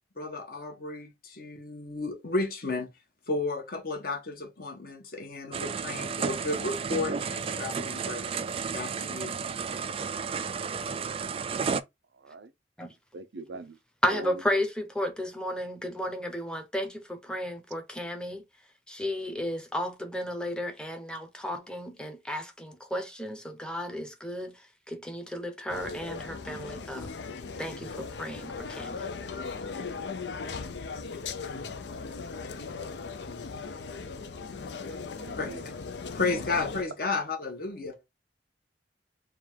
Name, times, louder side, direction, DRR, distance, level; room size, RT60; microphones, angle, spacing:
voice 1, 0.2-2.9 3.3-8.3 8.7-9.4 35.4-35.7 36.1-38.0, left 3 dB, 55° left, 1.2 m, -33 dB
sound 1, 5.5-11.8, right 5 dB, 30° right, 0.3 m, -32 dB
voice 2, 13.1-13.8 14.1-14.3 34.9-35.6, right 2 dB, 80° right, 0.5 m, -42 dB
voice 3, 14.0-18.4 18.9-27.1 27.6-29.1, left 1 dB, 5° left, 0.7 m, -33 dB
sound 2, 25.7-36.8, left 4 dB, 75° left, 0.5 m, -38 dB
3.7 x 2.4 x 4.4 m
head